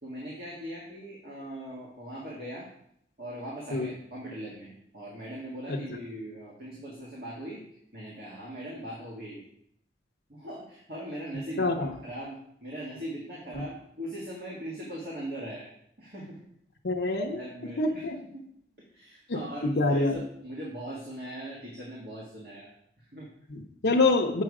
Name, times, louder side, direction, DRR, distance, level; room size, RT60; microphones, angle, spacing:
voice 1, 0.0-2.7 3.2-7.6 7.9-9.5 10.3-15.7 16.0-16.4 17.3-18.4 18.9-22.7 23.0-23.3, right 1 dB, 60° right, -5 dB, 1.9 m, -40 dB
voice 2, 11.6-11.9 16.8-17.4 17.8-18.2 19.3-20.2 23.5-24.4, left 3 dB, 80° left, 0 dB, 0.7 m, -26 dB
7.6 x 5.5 x 4.9 m, 0.71 s
head